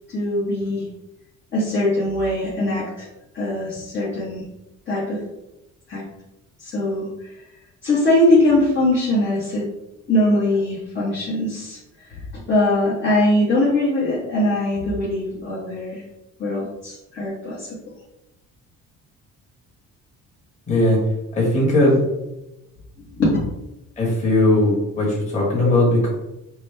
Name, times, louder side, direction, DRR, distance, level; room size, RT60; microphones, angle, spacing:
voice 1, 0.1-0.9 1.5-3.1 3.3-4.4 4.9-5.2 5.9-6.0 6.6-7.3 7.8-9.6 10.1-11.8 12.1-16.0 16.4-17.7 23.0-23.4 25.6-25.7, left 1 dB, 40° left, -8 dB, 1.1 m, -21 dB
voice 2, 20.7-21.0 21.3-22.0 24.0-26.1, left 1 dB, 20° left, -5 dB, 1.4 m, -18 dB
6.0 x 2.1 x 3.2 m, 0.93 s
cardioid pair, 170°, 31 cm